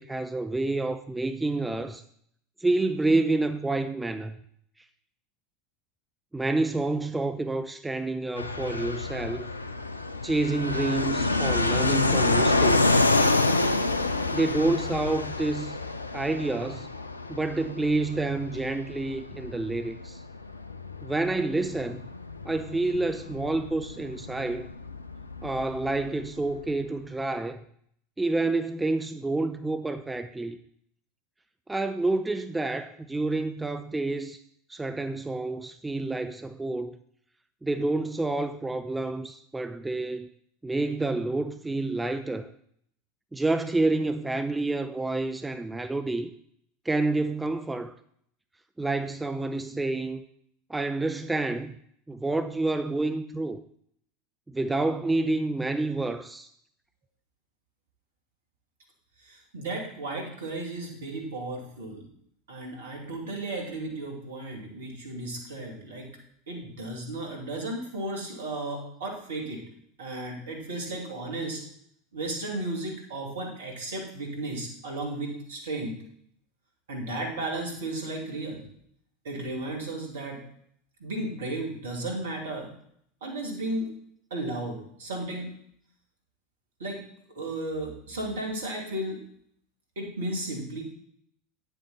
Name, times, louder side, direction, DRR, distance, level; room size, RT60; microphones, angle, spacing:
voice 1, 0.0-2.0 2.6-4.4 6.3-9.5 10.2-13.0 14.3-15.8 16.1-16.9 17.3-20.2 21.0-22.0 22.4-24.7 25.4-27.6 28.2-30.6 31.7-34.4 34.7-37.0 37.6-40.3 40.6-42.5 43.3-46.3 46.8-47.9 48.8-50.2 50.7-51.7 52.1-53.6 54.5-56.5, right 2 dB, 10° right, 0.6 m, -28 dB
Fixed-wing aircraft airplane, 8.4-26.7, left 2 dB, 85° left, 0.5 m, -28 dB
voice 2, 59.2-62.0 62.5-66.1 66.5-69.6 70.0-71.6 72.1-76.0 76.9-78.6 79.2-80.4 81.0-82.7 83.2-83.9 84.3-85.5 86.8-87.0 87.4-89.2 90.0-90.9, right 2 dB, 70° right, 2.7 m, -34 dB
9.8 x 7.9 x 4.3 m
figure-of-eight pair, 80°, 0 cm